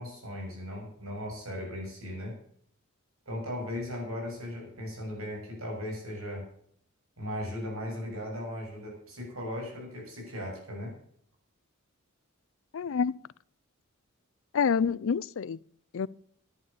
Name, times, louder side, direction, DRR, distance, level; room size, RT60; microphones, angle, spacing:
voice 1, 0.0-2.4 3.3-6.5 7.2-10.9, left 1 dB, 85° right, 7.0 m, -37 dB
voice 2, 12.7-13.1 14.5-15.6 15.9-16.1, left 6 dB, 65° left, 0.4 m, -27 dB
11.0 x 11.0 x 6.8 m
head